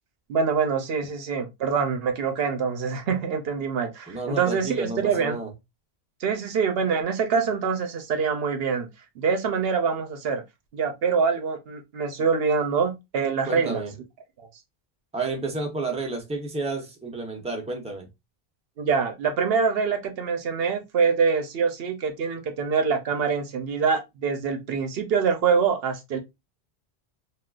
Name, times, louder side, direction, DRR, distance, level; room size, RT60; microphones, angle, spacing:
voice 1, 0.3-5.4 6.2-8.9 9.2-10.4 10.7-13.8 14.4-14.5 18.8-26.2, right 5 dB, 70° right, 0.8 m, -25 dB
voice 2, 4.1-5.5 13.5-13.9 15.1-18.1, right 3 dB, 5° right, 0.7 m, -31 dB
3.6 x 2.4 x 2.3 m
omnidirectional pair, 1.1 m